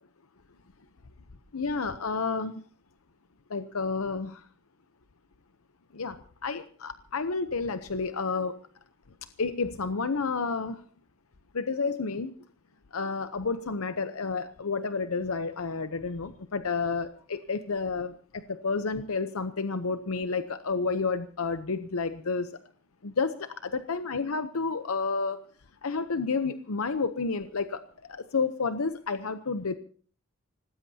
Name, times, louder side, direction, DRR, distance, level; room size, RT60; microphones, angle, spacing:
voice 1, 1.5-2.6 3.5-4.4 5.9-6.2 6.4-8.5 9.4-10.8 11.5-12.3 12.9-22.5 23.0-25.4 25.8-27.8 28.1-29.7, left 4 dB, 85° left, 10 dB, 0.8 m, -30 dB
25.5 x 18.5 x 2.8 m, 0.43 s
head